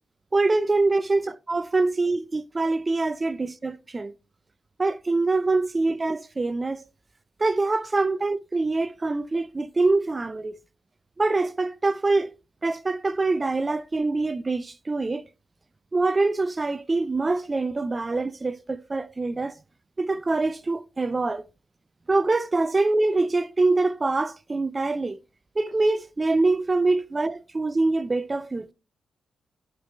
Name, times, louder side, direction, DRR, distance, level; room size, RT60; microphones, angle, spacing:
voice 1, 0.3-4.1 4.8-6.8 7.4-10.6 11.2-12.4 12.6-15.2 15.9-19.5 20.0-21.4 22.1-25.2 25.6-28.7, right 3 dB, 30° right, 0.6 m, -24 dB
9.0 x 4.8 x 3.3 m
supercardioid pair, 55°, 0 cm